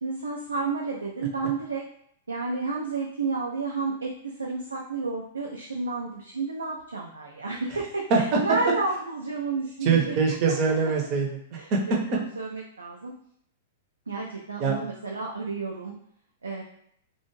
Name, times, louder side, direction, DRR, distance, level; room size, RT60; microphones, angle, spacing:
voice 1, 0.0-1.8 2.3-10.1 11.5-13.1 14.1-15.9 16.4-16.6, right 3 dB, 85° right, -2 dB, 0.4 m, -31 dB
voice 2, 9.8-11.3 11.7-11.8 14.6-14.8, right 5 dB, 40° right, 0 dB, 0.7 m, -22 dB
2.4 x 2.2 x 3.0 m, 0.69 s
figure-of-eight pair, 105°, 0 cm